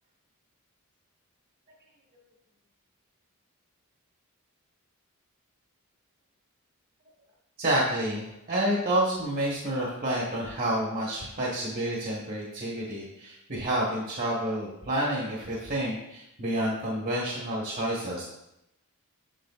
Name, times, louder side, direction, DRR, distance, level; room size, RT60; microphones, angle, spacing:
voice 1, 7.6-18.2, right 1 dB, 40° right, -4 dB, 1.2 m, -29 dB
7.6 x 6.3 x 2.4 m, 0.84 s
head